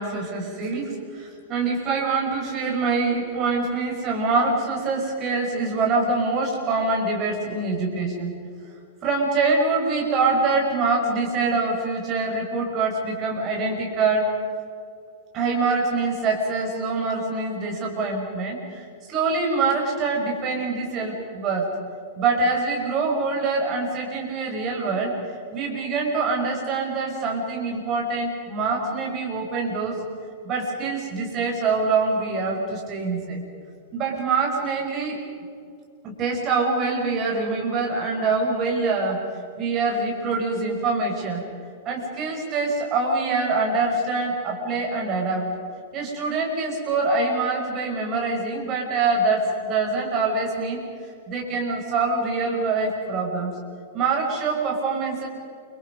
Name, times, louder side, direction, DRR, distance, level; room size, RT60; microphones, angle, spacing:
voice 1, 0.0-8.3 9.0-14.3 15.3-21.7 22.2-25.2 25.5-30.0 30.4-33.4 33.9-35.2 36.0-39.2 39.6-41.4 41.8-45.5 45.9-50.8 51.3-53.5 53.9-55.3, right 3 dB, 35° right, 0 dB, 5.9 m, -24 dB
29.5 x 25.5 x 5.4 m, 2.5 s
figure-of-eight pair, 100°, 0 cm